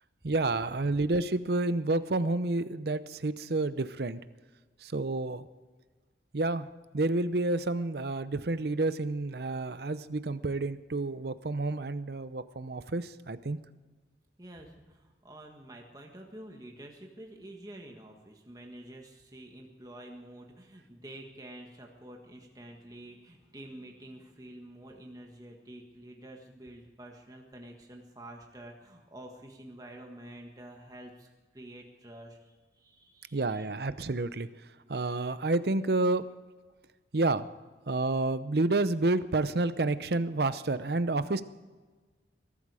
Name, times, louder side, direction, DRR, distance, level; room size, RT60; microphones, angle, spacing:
voice 1, 0.2-4.2 4.8-5.5 6.3-6.7 6.9-13.6 33.3-34.5 34.9-36.2 37.1-37.5 37.9-41.4, right 2 dB, 60° right, 14 dB, 0.7 m, -29 dB
voice 2, 14.4-31.3 31.5-33.7, right 1 dB, 20° right, 1 dB, 1.6 m, -48 dB
21.5 x 12.5 x 4.9 m, 1.3 s
head